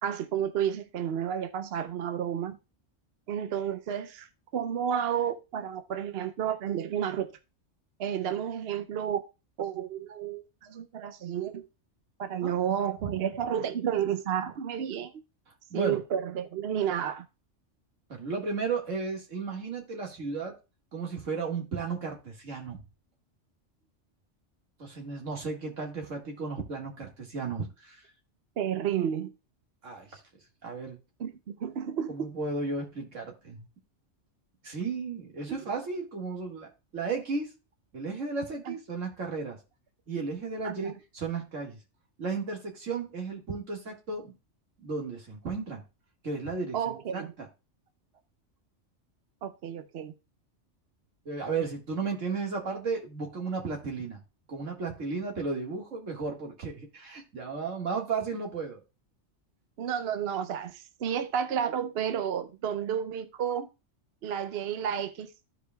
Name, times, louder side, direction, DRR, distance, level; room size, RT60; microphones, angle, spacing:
voice 1, 0.0-2.6 3.3-4.3 4.5-7.3 8.0-9.2 9.6-11.7 12.2-15.1 15.7-17.2 28.6-29.3 31.2-32.3 35.5-35.6 38.7-38.8 40.6-40.9 46.7-47.3 49.4-50.1 59.8-63.7 64.2-65.3, right 9 dB, 60° right, 0.8 m, -31 dB
voice 2, 15.7-16.0 18.1-20.6 20.9-22.8 24.8-28.0 29.8-30.2 30.6-31.0 32.1-33.7 34.6-37.5 37.9-39.6 40.1-41.8 42.2-44.3 44.8-45.8 46.2-47.5 51.3-54.2 54.5-58.8, right 4 dB, 80° right, 2.1 m, -34 dB
14.5 x 4.9 x 2.2 m
omnidirectional pair, 1.3 m